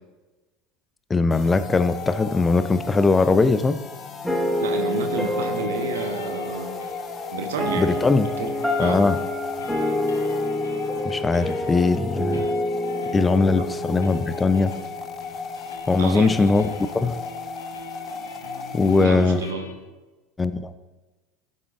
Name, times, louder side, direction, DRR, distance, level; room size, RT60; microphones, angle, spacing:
voice 1, 1.1-3.8 7.8-8.3 8.8-9.2 11.0-12.5 13.1-14.7 15.9-17.2 18.7-19.4 20.4-20.7, left 3 dB, 20° left, 12 dB, 0.5 m, -20 dB
sound 1, 1.3-19.5, left 5 dB, 40° left, 1.2 m, -36 dB
sound 2, 3.4-19.7, left 3 dB, 85° left, 1.0 m, -44 dB
sound 3, 4.2-15.4, left 1 dB, ahead, 1.4 m, -28 dB
voice 2, 4.6-6.7 7.3-8.0 8.4-8.5 8.8-9.0 13.6-13.7 16.0-16.5 18.8-19.7, right 5 dB, 80° right, 6 dB, 1.0 m, -30 dB
15.5 x 7.9 x 2.5 m, 1.2 s
hypercardioid pair, 75°, 0 cm